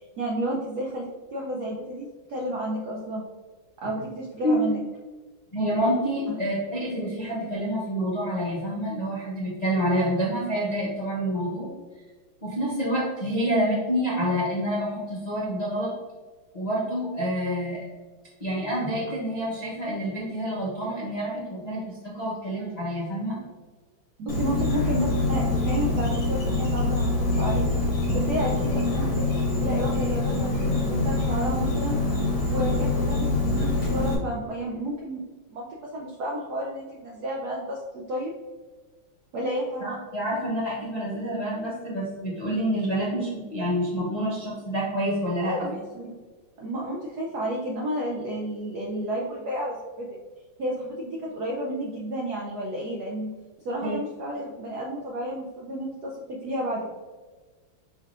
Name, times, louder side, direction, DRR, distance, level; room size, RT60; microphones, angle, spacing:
voice 1, 0.2-3.2 3.8-4.8 6.3-6.4 24.2-27.1 27.4-27.8 28.1-32.0 32.5-35.2 35.5-38.3 39.3-40.0 45.4-46.2 46.6-50.1 50.6-53.3 53.6-56.8, right 1 dB, 70° right, -3 dB, 0.9 m, -31 dB
voice 2, 5.5-11.7 12.4-15.9 16.5-17.8 18.4-23.4 39.8-45.5 53.8-54.0, equal, 90° left, -7 dB, 0.3 m, -27 dB
Insect, 24.3-34.2, left 2 dB, 70° left, 1.7 m, -25 dB
5.4 x 3.6 x 2.5 m, 1.4 s
omnidirectional pair, 2.4 m